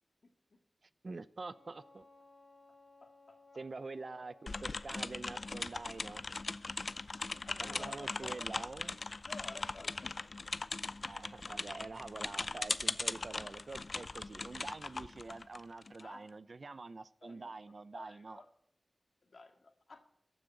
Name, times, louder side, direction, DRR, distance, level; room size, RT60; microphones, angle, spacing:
voice 1, 1.0-2.0 3.5-6.4 7.6-9.0 11.0-18.4, right 3 dB, 55° right, 16 dB, 0.6 m, -46 dB
Wind instrument woodwind instrument, 1.4-6.0, left 3 dB, 85° left, 4.1 m, -62 dB
voice 2, 3.0-3.4 6.9-8.9 9.2-10.3 16.0-16.3 17.2-18.5 19.2-20.0, left 3 dB, 65° left, 5 dB, 2.1 m, -54 dB
sound 1, 4.5-16.0, left 3 dB, 50° left, 0.5 m, -40 dB
14.5 x 6.4 x 8.7 m, 0.76 s
wide cardioid pair, 95°, 0 cm